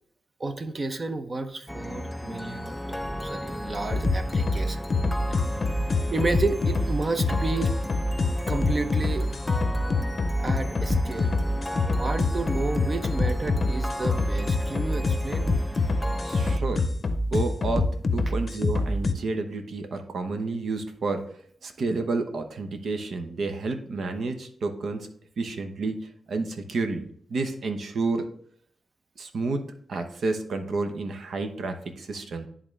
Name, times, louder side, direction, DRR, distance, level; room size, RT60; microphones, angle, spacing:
voice 1, 0.4-4.8 6.1-7.7 8.5-9.3 10.4-11.4 11.9-15.6, right 3 dB, 40° right, 8 dB, 0.7 m, -31 dB
sound 1, 1.7-16.6, left 1 dB, 5° left, 0.3 m, -35 dB
sound 2, 3.9-19.1, left 2 dB, 50° left, 0.6 m, -25 dB
voice 2, 16.2-16.9 17.3-21.2 21.6-25.1 25.4-28.3 29.2-32.5, right 3 dB, 75° right, 7 dB, 0.8 m, -30 dB
10.5 x 3.7 x 3.3 m, 0.63 s
wide cardioid pair, 95°, 0 cm